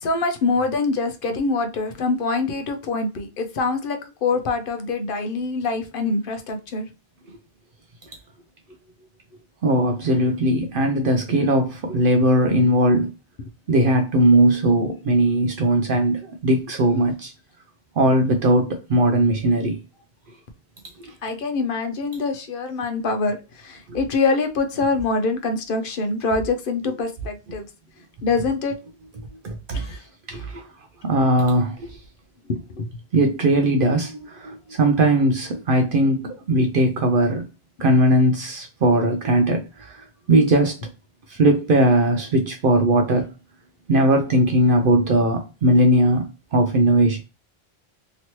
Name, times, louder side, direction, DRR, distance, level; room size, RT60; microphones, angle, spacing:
voice 1, 0.0-6.8 11.9-12.3 21.2-27.7 28.2-28.7 29.7-30.0 32.5-32.9, left 3 dB, 60° left, 0.7 m, -25 dB
voice 2, 9.6-13.1 13.7-17.3 18.0-19.8 21.0-21.1 23.9-24.0 29.4-30.0 30.3-30.7 31.0-32.0 33.1-37.5 37.8-40.8 41.3-43.3 43.9-46.2 46.5-47.2, right 1 dB, 65° right, 0.7 m, -19 dB
3.0 x 2.9 x 2.9 m
omnidirectional pair, 1.1 m